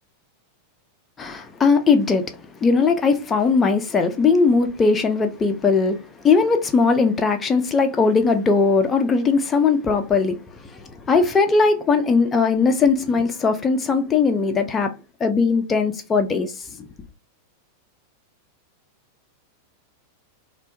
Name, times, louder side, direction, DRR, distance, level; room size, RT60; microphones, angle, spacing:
voice 1, 1.2-2.3 2.6-10.4 10.7-14.9 15.2-16.5, left 4 dB, 20° left, 0.4 m, -19 dB
2.1 x 2.1 x 2.8 m
figure-of-eight pair, 90°, 0 cm